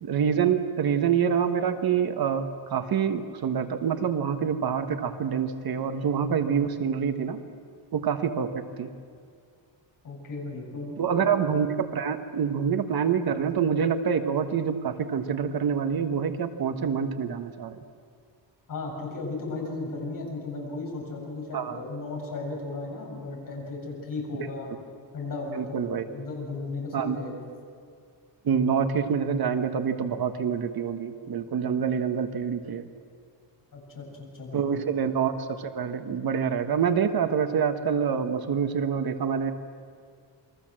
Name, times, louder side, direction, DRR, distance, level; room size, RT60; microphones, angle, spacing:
voice 1, 0.0-7.4 7.9-8.9 11.0-17.8 21.5-21.8 25.5-26.1 26.9-27.2 28.4-32.9 34.5-39.5, right 7 dB, 55° right, 8 dB, 1.4 m, -26 dB
voice 2, 10.0-11.3 18.7-24.7 25.1-27.4 33.7-34.8, left 3 dB, 45° left, -1 dB, 7.6 m, -35 dB
29.0 x 22.5 x 7.7 m, 2.2 s
cardioid pair, 155°, 45 cm